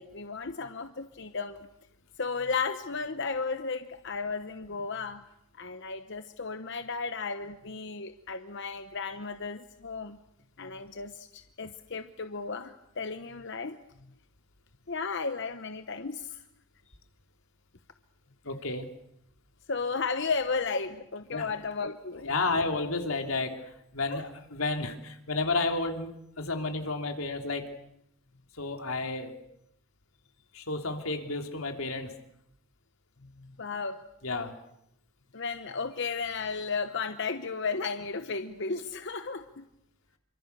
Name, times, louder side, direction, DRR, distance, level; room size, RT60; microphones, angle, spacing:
voice 1, 0.0-1.7 2.2-5.2 5.6-10.2 10.6-13.8 14.9-16.4 19.7-22.3 24.1-24.2 33.2-34.0 35.3-39.6, left 4 dB, 55° left, 8 dB, 1.0 m, -34 dB
voice 2, 18.4-18.9 21.3-21.5 22.2-26.1 26.4-27.7 28.5-29.3 30.5-32.1 34.2-34.5, left 3 dB, 70° left, 4 dB, 3.1 m, -31 dB
27.5 x 25.0 x 6.9 m, 0.80 s
head